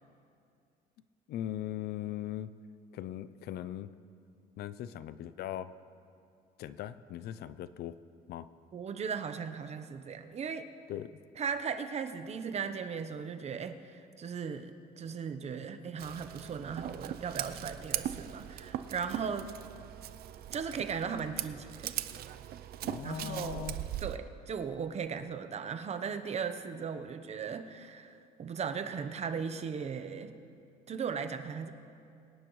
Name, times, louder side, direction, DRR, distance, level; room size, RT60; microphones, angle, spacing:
voice 1, 1.3-2.6 2.9-3.9 4.6-5.7 6.6-8.0 8.3-8.5 10.9-11.2 22.8-23.8, left 12 dB, 70° left, 15 dB, 0.5 m, -39 dB
voice 2, 8.7-10.7 11.4-19.5 20.5-22.0 23.0-23.7 24.0-30.3 30.9-31.7, right 6 dB, 40° right, 9 dB, 0.9 m, -37 dB
Scissors, 16.0-24.2, right 12 dB, 65° right, 0.6 m, -40 dB
24.0 x 10.5 x 3.1 m, 2.5 s
cardioid pair, 110°, 17 cm